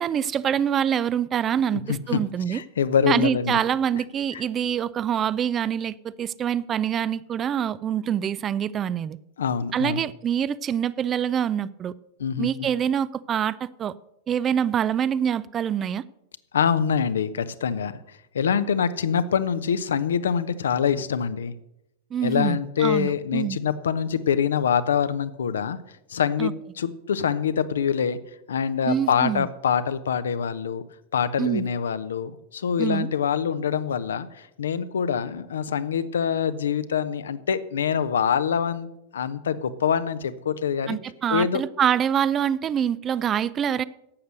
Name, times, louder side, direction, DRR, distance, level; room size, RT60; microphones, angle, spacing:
voice 1, 0.0-2.6 3.1-9.2 9.7-11.9 12.4-13.9 14.3-16.0 22.1-23.6 26.4-26.5 28.9-29.5 31.4-31.7 32.8-33.1 40.9-43.8, right 9 dB, 25° right, 18 dB, 0.4 m, -25 dB
voice 2, 1.9-2.2 2.5-3.6 4.3-4.4 9.4-10.0 12.2-12.7 16.5-18.0 18.3-21.5 22.2-25.8 26.1-28.2 28.5-30.8 31.1-41.0 41.3-41.6, left 7 dB, 65° left, 14 dB, 0.7 m, -25 dB
11.5 x 8.1 x 6.5 m, 0.84 s
figure-of-eight pair, 90°, 0 cm